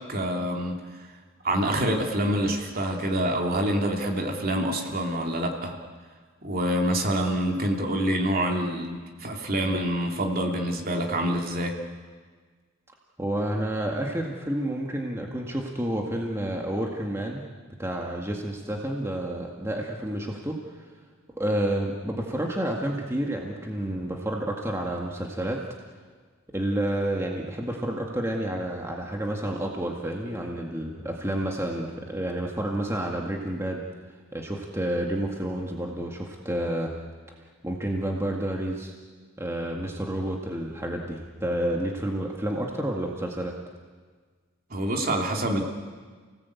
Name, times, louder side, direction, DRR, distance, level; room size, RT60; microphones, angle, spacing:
voice 1, 0.1-1.1 1.4-5.7 6.4-11.7 44.7-45.6, right 1 dB, 45° right, 1 dB, 3.0 m, -26 dB
voice 2, 13.2-17.4 17.8-20.5 21.4-25.6 26.5-33.8 34.3-36.9 37.6-38.9 39.4-43.5, right 1 dB, 15° right, 0 dB, 2.0 m, -29 dB
29.5 x 18.5 x 8.5 m, 1.5 s
head